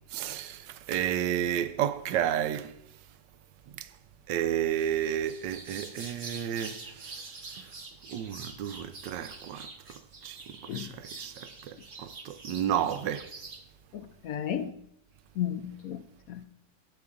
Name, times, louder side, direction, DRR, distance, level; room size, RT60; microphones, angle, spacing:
voice 1, 0.1-2.7 3.7-3.9 4.3-7.2 7.6-7.7 8.1-9.7 10.2-13.3, right 10 dB, 80° right, 1.2 m, -32 dB
sound 1, 4.7-13.6, right 3 dB, 35° right, 1.4 m, -45 dB
voice 2, 13.9-14.7 15.4-16.0 16.3-16.4, left 10 dB, 75° left, 0.8 m, -33 dB
15.0 x 8.6 x 2.5 m
omnidirectional pair, 2.0 m